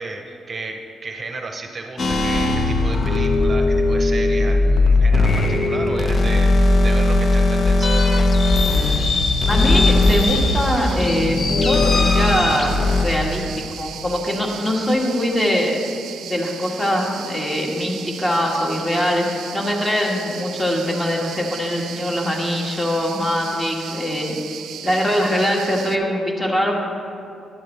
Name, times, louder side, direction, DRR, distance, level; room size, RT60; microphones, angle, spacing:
voice 1, 0.0-8.0, right 3 dB, 40° right, 3 dB, 0.8 m, -33 dB
sound 1, 2.0-13.0, left 2 dB, 50° left, 0.9 m, -18 dB
sound 2, 8.2-26.0, right 9 dB, 80° right, 0.5 m, -36 dB
voice 2, 9.5-12.7 13.0-15.8 16.2-24.4 24.8-26.7, left 1 dB, 20° left, -1 dB, 1.8 m, -22 dB
11.0 x 10.5 x 3.4 m, 2.6 s
cardioid pair, 95°, 0 cm